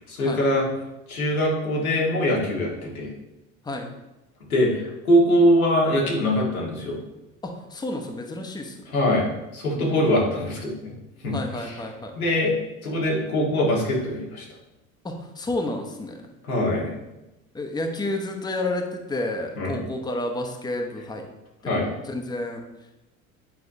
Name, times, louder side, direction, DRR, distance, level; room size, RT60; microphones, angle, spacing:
voice 1, 0.1-0.6 1.1-3.1 4.5-7.0 8.9-10.9 11.2-11.7 12.1-12.5 12.8-14.4 16.5-16.9 19.6-19.8 21.6-21.9, equal, 90° left, -3 dB, 1.6 m, -22 dB
voice 2, 7.4-8.8 9.7-9.9 11.3-12.1 15.0-16.2 17.5-21.3 21.6-22.6, left 2 dB, 10° left, 3 dB, 0.9 m, -30 dB
8.0 x 4.7 x 2.7 m, 0.97 s
hypercardioid pair, 70°, 42 cm